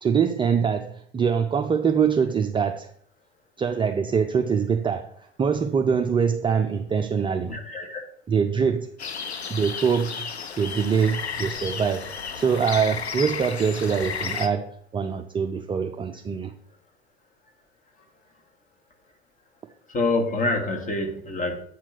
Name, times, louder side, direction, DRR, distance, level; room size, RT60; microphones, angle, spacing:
voice 1, 0.0-2.9 3.6-7.5 8.3-8.9 9.5-10.3 10.6-12.1 12.3-16.5, right 6 dB, 15° right, 5 dB, 0.5 m, -24 dB
voice 2, 7.5-8.0 19.9-21.6, left 2 dB, 25° left, 4 dB, 2.1 m, -26 dB
sound 1, 9.0-14.5, left 6 dB, 90° left, 0.8 m, -33 dB
8.6 x 4.5 x 5.9 m, 0.63 s
figure-of-eight pair, 80°, 31 cm